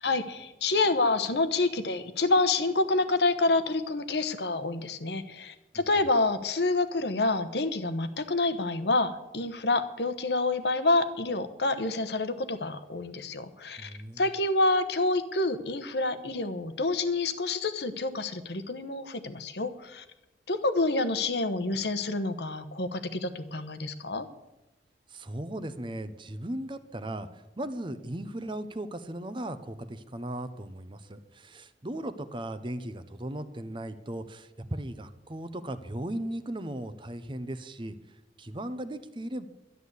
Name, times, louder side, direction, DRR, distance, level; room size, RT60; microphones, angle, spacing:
voice 1, 0.0-13.9 14.2-20.0 20.5-24.2, left 2 dB, 70° left, 11 dB, 1.1 m, -28 dB
voice 2, 13.8-14.2 25.1-38.0 38.4-39.5, right 1 dB, 30° right, 11 dB, 0.8 m, -37 dB
11.5 x 11.0 x 8.3 m, 0.98 s
head